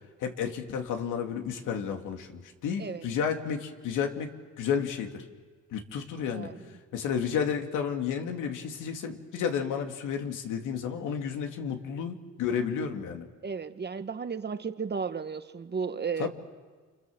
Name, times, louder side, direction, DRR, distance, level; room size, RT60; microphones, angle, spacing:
voice 1, 0.2-5.2 5.7-6.5 6.9-13.3 16.2-16.3, left 7 dB, 90° left, 4 dB, 2.7 m, -32 dB
voice 2, 6.3-6.7 13.4-16.3, right 5 dB, 35° right, 10 dB, 1.4 m, -34 dB
29.5 x 27.0 x 7.4 m, 1.4 s
cardioid pair, 90°, 30 cm